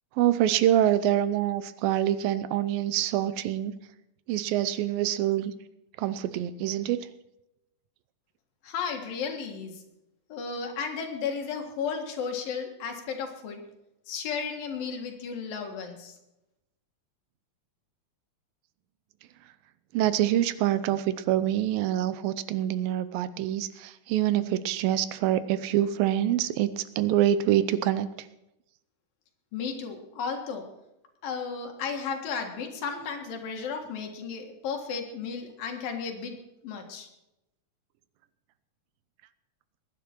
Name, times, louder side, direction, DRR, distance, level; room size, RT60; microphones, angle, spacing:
voice 1, 0.2-3.7 4.3-5.5 6.0-7.1 19.9-28.1, right 12 dB, 85° right, 14 dB, 2.5 m, -25 dB
voice 2, 8.6-9.8 10.3-13.6 14.1-16.2 29.5-30.7 31.2-36.4 36.6-37.1, left 6 dB, 75° left, 3 dB, 3.5 m, -34 dB
21.5 x 10.0 x 4.5 m, 0.90 s
omnidirectional pair, 4.1 m